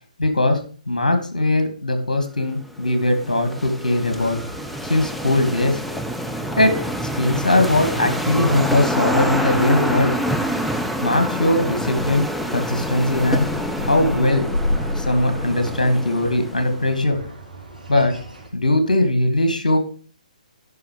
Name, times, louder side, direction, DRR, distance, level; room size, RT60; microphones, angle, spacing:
voice 1, 0.2-0.6 0.9-4.4 4.8-5.8 6.6-6.7 7.2-10.1 11.0-13.5 13.8-14.4 14.7-17.2 17.9-18.1 18.5-19.8, left 1 dB, 70° left, 7 dB, 2.2 m, -20 dB
sound 1, 2.5-17.0, equal, ahead, 0.5 m, -27 dB
sound 2, 4.1-18.5, left 1 dB, 80° right, 4.4 m, -34 dB
11.0 x 5.7 x 4.9 m, 0.40 s
figure-of-eight pair, 130°, 4 cm